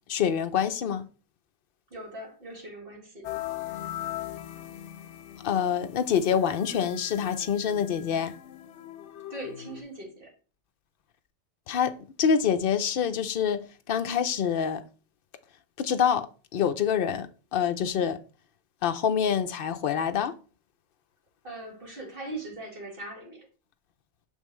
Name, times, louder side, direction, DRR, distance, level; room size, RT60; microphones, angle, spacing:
voice 1, 0.1-1.1 5.4-8.3 11.7-11.9 12.2-13.6 13.9-14.8 15.8-16.3 16.5-17.3 17.5-18.2 18.8-20.3, left 8 dB, 60° left, 0.7 m, -26 dB
voice 2, 1.9-3.3 9.3-10.3 21.4-23.5, right 2 dB, 50° right, 2.1 m, -40 dB
sound 1, 3.2-9.8, left 13 dB, 85° left, 0.9 m, -40 dB
6.6 x 5.4 x 3.1 m
omnidirectional pair, 1.2 m